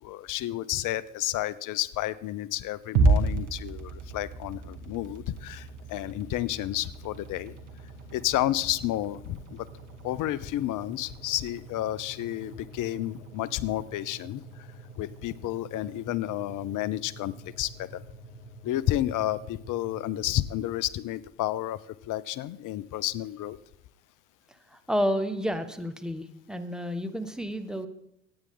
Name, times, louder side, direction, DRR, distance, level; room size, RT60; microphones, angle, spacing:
voice 1, 0.0-7.5 8.1-9.7 10.0-14.4 15.0-18.0 18.6-21.8 22.1-23.6, left 14 dB, 55° left, 20 dB, 0.8 m, -31 dB
sound 1, 3.0-21.2, right 3 dB, 80° right, 2.3 m, -34 dB
voice 2, 24.7-27.9, equal, ahead, 8 dB, 1.7 m, -30 dB
24.0 x 9.6 x 3.9 m, 0.79 s
hypercardioid pair, 60°, 36 cm